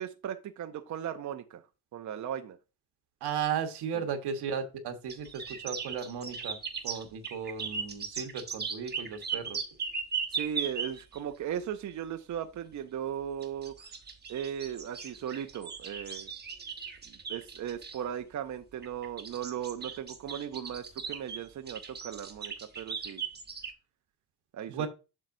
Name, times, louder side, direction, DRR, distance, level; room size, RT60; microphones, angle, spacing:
voice 1, 0.0-1.6 1.9-2.6 3.9-4.0 10.3-13.9 14.3-16.3 17.1-23.2 24.5-24.9, right 9 dB, 45° right, 0.6 m, -37 dB
voice 2, 3.2-6.6 6.8-9.7 24.7-24.9, right 7 dB, 85° right, 1.4 m, -35 dB
sound 1, 5.1-11.2 13.4-18.0 18.8-23.7, right 6 dB, 25° right, 1.0 m, -38 dB
7.5 x 6.4 x 2.6 m
cardioid pair, 115°, 39 cm